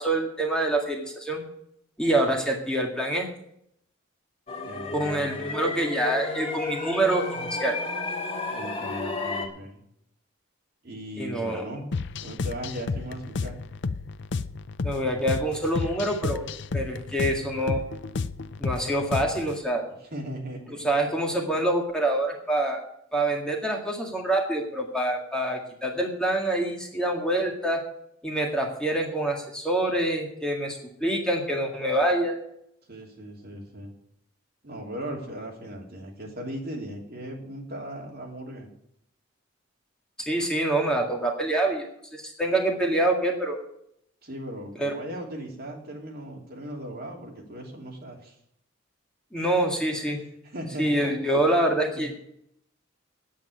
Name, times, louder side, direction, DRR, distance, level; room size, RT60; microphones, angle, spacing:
voice 1, 0.0-1.4 2.0-3.3 4.9-7.8 11.2-11.6 14.8-16.5 16.7-17.8 18.6-19.9 20.8-22.8 23.1-27.8 28.2-32.3 40.2-41.8 42.1-43.6 44.8-44.9 49.3-50.2 50.8-52.2, right 1 dB, 5° left, 0 dB, 1.9 m, -26 dB
sound 1, 4.5-9.5, left 3 dB, 30° left, 2.2 m, -32 dB
voice 2, 4.6-5.5 8.5-9.8 10.8-11.9 12.2-13.6 20.1-20.9 21.5-21.6 32.9-33.9 34.6-38.7 44.2-48.3 50.1-50.2 50.4-51.2 51.9-52.0, equal, 50° right, -1 dB, 3.1 m, -38 dB
sound 2, 11.9-19.6, left 4 dB, 60° left, 0.5 m, -32 dB
9.0 x 8.8 x 9.3 m, 0.73 s
head